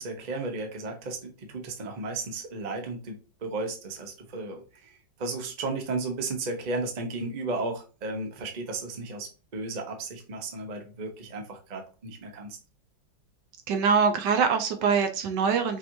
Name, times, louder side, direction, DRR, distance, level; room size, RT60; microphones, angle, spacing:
voice 1, 0.0-12.6, right 3 dB, 40° right, 3 dB, 0.6 m, -34 dB
voice 2, 13.7-15.8, right 6 dB, 70° right, 7 dB, 1.2 m, -24 dB
5.3 x 3.0 x 2.7 m, 0.33 s
omnidirectional pair, 2.0 m